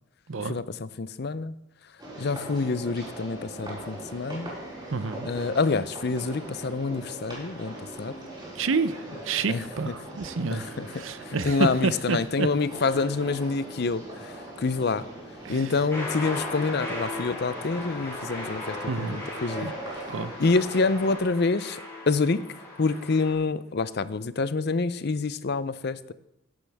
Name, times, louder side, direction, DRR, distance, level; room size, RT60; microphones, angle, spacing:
voice 1, 0.4-1.9 2.2-4.5 5.2-8.2 9.5-9.9 10.5-15.1 15.5-19.7 20.4-21.8 22.1-22.4 22.8-26.1, left 4 dB, 50° left, 15 dB, 0.5 m, -27 dB
sound 1, 2.0-21.2, right 1 dB, 20° right, 5.0 m, -40 dB
voice 2, 4.9-5.3 8.6-12.5 15.4-15.7 18.9-19.2 19.6-19.7 20.1-20.3, right 4 dB, 70° right, 14 dB, 0.7 m, -29 dB
sound 2, 15.9-23.3, left 2 dB, 15° left, 5.2 m, -37 dB
16.0 x 11.5 x 3.5 m, 0.83 s
head